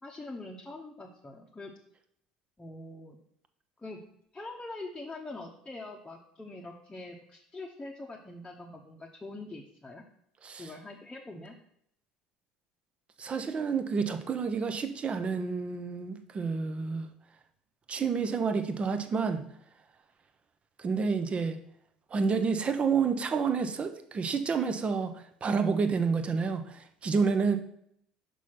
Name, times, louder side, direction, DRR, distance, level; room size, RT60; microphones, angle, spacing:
voice 1, 0.0-1.7 2.6-3.2 3.8-4.0 4.3-10.0 10.6-11.5, left 2 dB, 15° left, -2 dB, 1.1 m, -43 dB
voice 2, 13.2-17.1 17.9-19.4 20.8-21.6 22.1-25.1 25.4-27.6, right 5 dB, 30° right, 9 dB, 0.9 m, -29 dB
6.1 x 5.5 x 5.8 m, 0.69 s
figure-of-eight pair, 65°, 4 cm